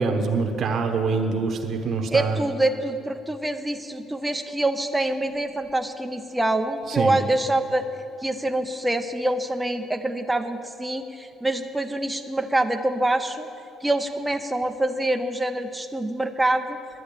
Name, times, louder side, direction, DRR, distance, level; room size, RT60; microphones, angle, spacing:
voice 1, 0.0-2.4 6.8-7.2, right 4 dB, 50° right, 4 dB, 1.0 m, -25 dB
voice 2, 2.1-7.9 8.2-13.5 13.8-16.8, right 1 dB, 10° right, 5 dB, 0.6 m, -25 dB
10.5 x 9.3 x 8.5 m, 2.7 s
cardioid pair, 120°, 0 cm